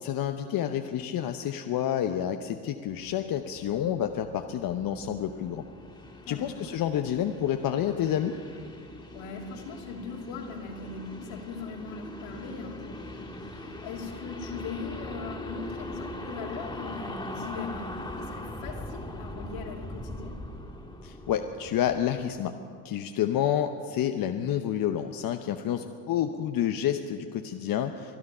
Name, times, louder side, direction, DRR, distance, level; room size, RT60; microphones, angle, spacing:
voice 1, 0.0-5.7 6.3-8.4 21.0-22.5 22.8-28.2, left 10 dB, 45° left, 7 dB, 0.8 m, -29 dB
sound 1, 2.9-22.4, left 1 dB, 10° left, 2.3 m, -41 dB
voice 2, 6.2-6.7 9.1-20.4, left 4 dB, 65° left, 1 dB, 2.8 m, -40 dB
24.5 x 9.5 x 5.6 m, 2.2 s
supercardioid pair, 95°, 49 cm